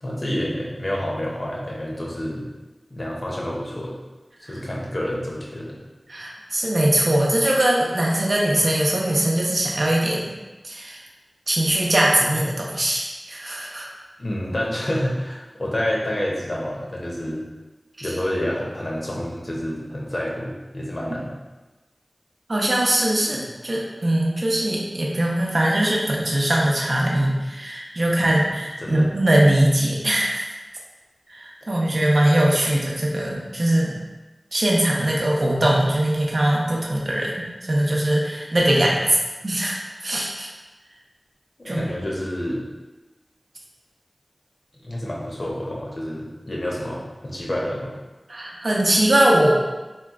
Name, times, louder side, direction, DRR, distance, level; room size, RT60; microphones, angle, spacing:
voice 1, 0.0-2.4 2.9-4.0 4.5-5.8 14.2-17.4 18.0-21.3 28.2-28.5 28.8-29.1 41.6-42.6 44.8-47.9, left 1 dB, 55° left, -3 dB, 0.7 m, -28 dB
voice 2, 6.1-10.3 10.6-11.0 11.5-13.9 18.0-18.1 22.5-30.4 31.3-33.9 34.5-39.2 39.4-40.5 41.7-41.9 48.3-49.6, right 1 dB, 70° right, -3 dB, 0.6 m, -21 dB
2.9 x 2.3 x 3.5 m, 1.2 s
wide cardioid pair, 45°, 0 cm